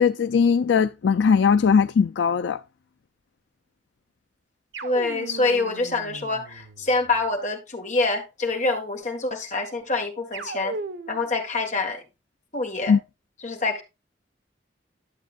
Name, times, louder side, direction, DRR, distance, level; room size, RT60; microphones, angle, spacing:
voice 1, 0.0-2.6 12.9-13.0, left 6 dB, 80° left, 0.4 m, -19 dB
sound 1, 4.7-7.2 10.3-11.4, right 3 dB, 80° right, 1.2 m, -37 dB
voice 2, 4.8-10.8 11.1-12.0 12.5-13.0 13.4-13.8, left 3 dB, 40° left, 1.7 m, -26 dB
11.5 x 7.4 x 2.5 m
head